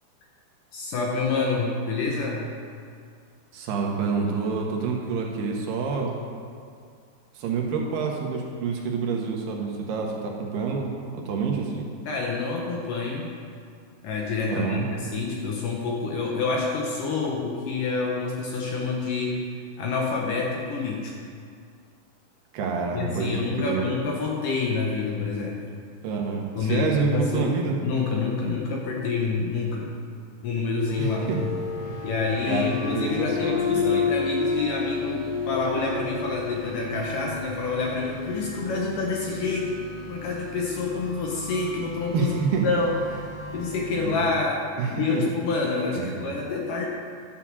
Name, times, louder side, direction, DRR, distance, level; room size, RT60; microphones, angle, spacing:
voice 1, 0.7-2.4 12.1-13.3 14.0-19.4 19.8-21.1 22.9-25.6 26.6-27.5 27.8-30.0 30.4-31.2 32.0-39.8 40.1-42.3 42.6-43.2 43.5-44.6 44.9-46.9, left 4 dB, 65° left, -1 dB, 2.3 m, -27 dB
voice 2, 3.5-6.2 7.3-11.9 14.5-14.8 22.5-23.9 26.0-27.8 31.0-31.4 31.8-32.0 32.4-34.0 42.1-42.7 44.0-44.3 44.8-45.2 46.0-46.1, right 5 dB, 70° right, 0 dB, 3.1 m, -28 dB
sound 1, 30.9-44.2, left 4 dB, 15° left, 2.6 m, -32 dB
12.0 x 6.7 x 7.4 m, 2.2 s
omnidirectional pair, 4.9 m